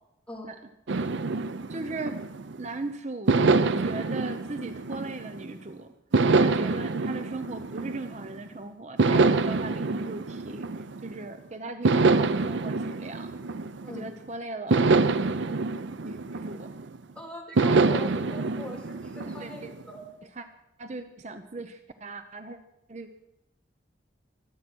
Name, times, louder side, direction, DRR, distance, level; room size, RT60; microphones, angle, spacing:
sound 1, 0.9-2.7 3.3-5.5 6.1-8.4 9.0-11.2 11.8-14.1 14.7-17.0 17.6-19.8, right 3 dB, 80° right, 0.6 m, -25 dB
voice 1, 1.7-2.2 2.6-3.5 3.8-5.9 6.4-10.7 11.0-13.3 13.9-14.8 16.0-16.7 19.4-19.7 20.4-20.5 20.8-22.6 22.9-23.1, right 3 dB, 40° right, 8 dB, 0.7 m, -38 dB
voice 2, 17.1-20.0, left 1 dB, 5° left, -2 dB, 3.1 m, -42 dB
24.0 x 9.2 x 6.2 m, 0.89 s
head